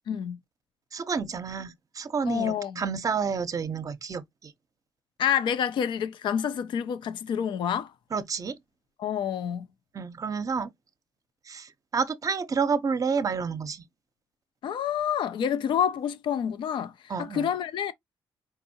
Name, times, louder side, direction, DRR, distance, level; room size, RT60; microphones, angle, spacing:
voice 1, 0.1-0.4 2.3-2.8 5.2-7.9 9.0-9.7 14.6-17.9, left 8 dB, 70° left, 0.5 m, -28 dB
voice 2, 0.9-4.5 8.1-8.6 9.9-10.7 11.5-13.8 17.1-17.5, right 5 dB, 45° right, 0.6 m, -30 dB
4.7 x 2.6 x 2.7 m
cardioid pair, 80°, 8 cm